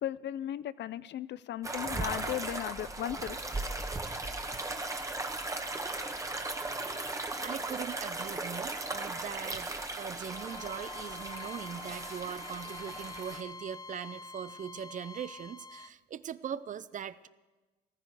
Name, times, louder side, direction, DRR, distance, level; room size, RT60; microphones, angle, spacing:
voice 1, 0.0-3.4, left 12 dB, 60° left, 17 dB, 0.5 m, -36 dB
sound 1, 1.6-13.4, right 2 dB, 15° right, 1.3 m, -37 dB
voice 2, 7.4-17.3, right 8 dB, 40° right, 16 dB, 0.5 m, -41 dB
Bowed string instrument, 10.2-15.9, left 4 dB, 20° left, 0.5 m, -46 dB
14.5 x 14.5 x 4.8 m, 1.2 s
cardioid pair, 90°, 20 cm